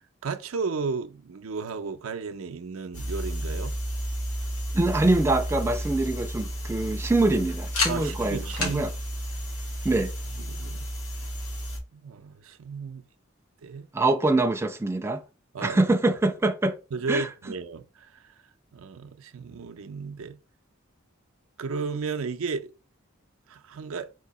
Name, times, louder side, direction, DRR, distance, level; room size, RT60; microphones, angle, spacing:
voice 1, 0.2-3.7 7.9-8.9 10.4-10.9 11.9-13.0 13.6-13.9 15.5-15.8 16.9-18.1 18.7-20.4 21.6-22.7 23.5-24.1, right 4 dB, 80° right, 0.5 m, -33 dB
Bolt Action rifle handling, 2.9-11.8, equal, 80° left, 1.8 m, -31 dB
voice 2, 4.7-8.9 9.8-10.1 13.9-15.2 15.6-16.8 17.1-17.3, right 2 dB, 10° right, 0.3 m, -24 dB
4.5 x 2.7 x 4.0 m
head